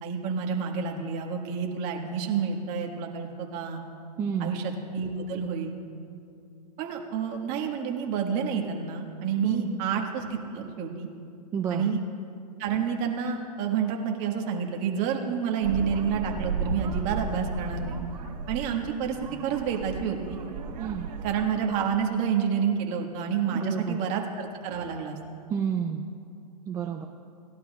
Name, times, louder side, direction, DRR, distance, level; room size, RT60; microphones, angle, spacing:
voice 1, 0.0-3.8 4.4-5.7 6.8-11.1 11.7-12.0 12.6-18.0 18.5-19.2 19.4-20.4 21.2-25.2, right 6 dB, 35° right, 2 dB, 1.6 m, -29 dB
voice 2, 4.2-4.5 9.4-9.8 11.5-11.8 20.8-21.1 23.5-24.0 25.5-26.1 26.7-27.1, right 8 dB, 15° right, 3 dB, 0.4 m, -30 dB
sound 1, 15.6-21.5, right 4 dB, 75° right, 1.5 m, -34 dB
19.5 x 11.5 x 2.3 m, 2.5 s
hypercardioid pair, 140°, 21 cm